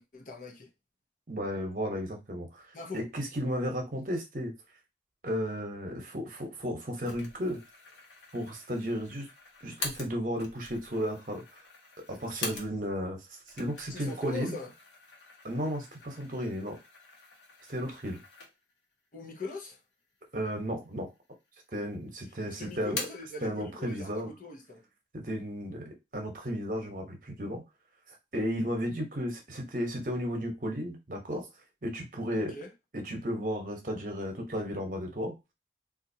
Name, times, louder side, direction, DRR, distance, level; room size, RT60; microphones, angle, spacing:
voice 1, 0.1-0.7 2.7-3.0 13.9-14.7 19.1-19.8 22.4-24.8 32.3-32.7, left 2 dB, 45° left, 0.8 m, -41 dB
voice 2, 1.3-2.7 2.9-4.5 5.2-7.6 8.3-9.3 9.6-11.4 12.1-14.6 15.4-16.8 17.7-18.2 20.3-21.1 21.7-23.0 23.4-24.3 25.1-27.6 28.3-31.5 31.8-32.5 32.9-35.3, equal, 45° right, 1.0 m, -34 dB
sound 1, 7.0-13.0 13.4-18.8 19.3-19.4 20.2-20.9 21.2-21.9 22.2-23.3, left 3 dB, 80° left, 1.1 m, -44 dB
3.9 x 2.5 x 2.7 m
head